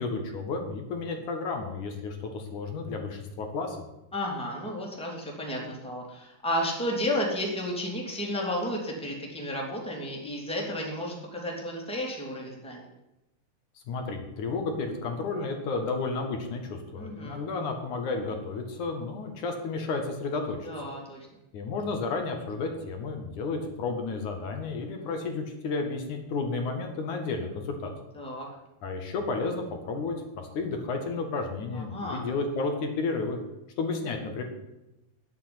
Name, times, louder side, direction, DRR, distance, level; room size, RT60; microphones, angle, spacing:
voice 1, 0.0-3.8 13.9-20.6 21.5-27.9 28.8-33.4 33.8-34.4, left 3 dB, 75° left, 3 dB, 3.2 m, -32 dB
voice 2, 4.1-12.9 16.9-17.4 20.6-21.3 28.1-28.5 31.7-32.2, left 1 dB, ahead, -2 dB, 2.9 m, -32 dB
10.0 x 8.4 x 9.9 m, 0.91 s
omnidirectional pair, 3.6 m